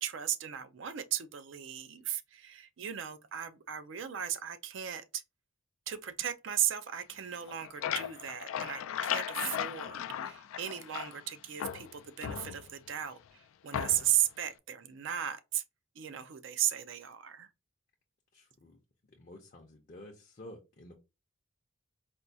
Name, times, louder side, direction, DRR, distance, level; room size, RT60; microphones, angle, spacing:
voice 1, 0.0-5.2 5.9-15.6 16.0-17.5, right 11 dB, 65° right, 0.4 m, -36 dB
sound 1, 7.3-11.3 11.6-12.9 13.7-14.3, left 9 dB, 85° left, 0.3 m, -37 dB
voice 2, 9.8-10.2 18.3-18.8 19.1-20.9, left 1 dB, 40° left, 0.5 m, -51 dB
4.3 x 2.3 x 2.6 m
head